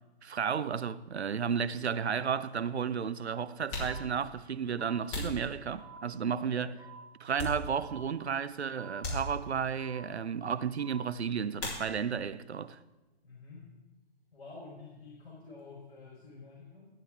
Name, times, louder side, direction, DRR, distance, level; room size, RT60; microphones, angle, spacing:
voice 1, 0.2-6.8 7.2-12.8, right 7 dB, 85° right, 0.6 m, -33 dB
sound 1, 3.6-6.2 6.7-8.1 8.4-8.5 9.0-9.8 11.5-12.3 12.6-13.3 13.6-15.7, left 1 dB, 30° left, 4.0 m, -41 dB
sound 2, 3.8-4.0 4.8-5.0 5.8-6.0 6.8-7.0 7.8-8.0 8.8-9.0 9.8-10.0 10.8-11.0 11.8-12.0, right 7 dB, 45° right, 3.8 m, -51 dB
voice 2, 6.3-6.7 13.2-13.7 14.3-16.9, left 3 dB, 60° left, 4.2 m, -49 dB
14.5 x 8.8 x 3.6 m
figure-of-eight pair, 135°, 32 cm